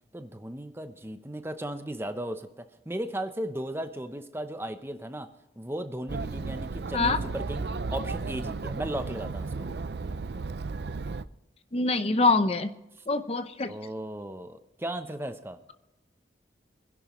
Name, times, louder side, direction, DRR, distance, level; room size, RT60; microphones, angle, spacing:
voice 1, 0.1-5.3 5.6-9.7 13.0-13.1 13.7-15.6, right 1 dB, 15° right, 8 dB, 0.7 m, -36 dB
Chatter, 6.1-11.2, right 3 dB, 60° right, 0.5 m, -34 dB
voice 2, 11.7-12.7 13.1-13.7, left 3 dB, 35° left, 10 dB, 0.7 m, -24 dB
25.0 x 11.0 x 3.1 m, 0.92 s
head